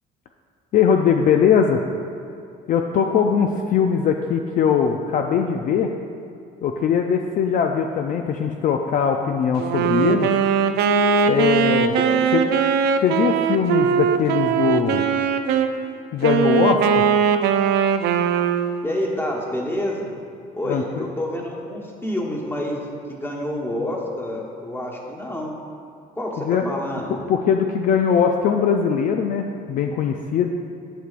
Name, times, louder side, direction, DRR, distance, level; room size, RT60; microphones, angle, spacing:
voice 1, 0.7-1.8 2.7-5.9 6.6-10.3 11.3-11.9 12.3-12.4 13.0-15.0 16.1-17.1 20.6-21.1 26.4-26.7 27.3-30.5, left 7 dB, 55° left, 4 dB, 0.4 m, -20 dB
Wind instrument woodwind instrument, 9.6-15.7 16.2-18.9, right 7 dB, 80° right, 0.4 m, -20 dB
voice 2, 12.0-12.3 16.5-16.7 18.8-20.1 20.5-22.8 23.1-25.5 26.2-27.1, left 1 dB, 15° left, -2 dB, 1.2 m, -28 dB
11.5 x 6.1 x 2.5 m, 2.3 s
cardioid pair, 110°, 17 cm